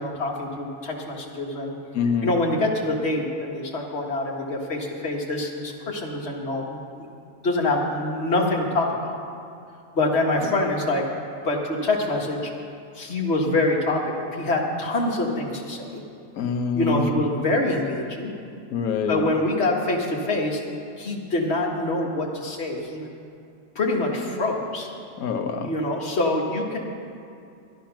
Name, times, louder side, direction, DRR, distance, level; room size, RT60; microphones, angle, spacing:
voice 1, 0.0-1.8 2.0-7.1 7.4-9.2 9.9-11.0 11.4-12.5 12.9-16.0 16.7-18.3 19.1-20.6 21.0-23.1 23.8-24.9 25.6-26.8, left 2 dB, 45° left, -1 dB, 1.8 m, -25 dB
voice 2, 1.9-2.3 16.4-17.0 18.7-19.3 25.2-25.7, left 6 dB, 75° left, 6 dB, 1.3 m, -25 dB
12.0 x 12.0 x 5.9 m, 2.5 s
omnidirectional pair, 1.6 m